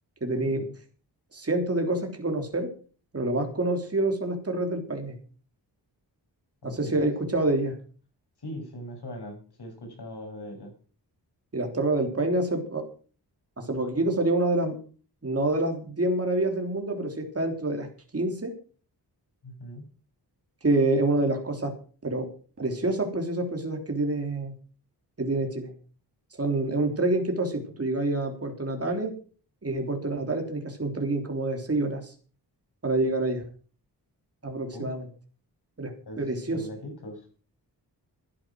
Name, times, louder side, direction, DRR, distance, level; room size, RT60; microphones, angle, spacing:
voice 1, 0.2-0.7 1.3-2.7 3.1-5.2 6.6-7.7 11.5-12.8 13.6-14.8 15.2-17.9 18.1-18.6 20.6-21.7 22.0-22.3 22.6-24.5 25.2-25.7 26.4-29.1 29.6-32.1 32.8-33.4 34.4-35.1 35.8-35.9 36.2-36.6, right 2 dB, 35° right, 3 dB, 3.4 m, -27 dB
voice 2, 6.6-7.1 8.4-10.7 19.4-19.8 34.7-34.9 36.1-36.2 36.5-37.2, equal, 70° left, 2 dB, 7.5 m, -40 dB
13.0 x 10.5 x 6.2 m, 0.40 s
wide cardioid pair, 85°, 41 cm